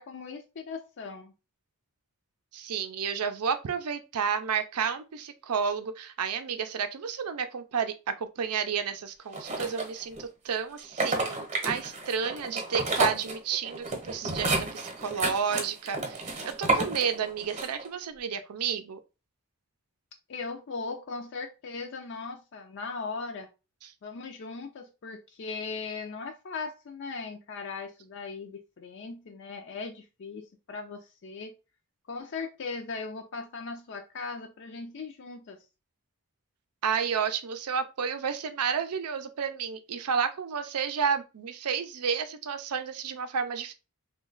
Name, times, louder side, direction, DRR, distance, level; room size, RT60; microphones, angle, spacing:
voice 1, 0.0-1.3 20.3-23.5 24.0-31.5 32.1-35.6, left 4 dB, 55° left, 0.4 m, -38 dB
voice 2, 2.5-19.0 23.8-23.9 36.8-43.7, right 6 dB, 85° right, 0.5 m, -31 dB
sound 1, 9.3-10.2 10.8-17.9, right 2 dB, 30° right, 0.8 m, -31 dB
3.1 x 2.2 x 3.7 m
head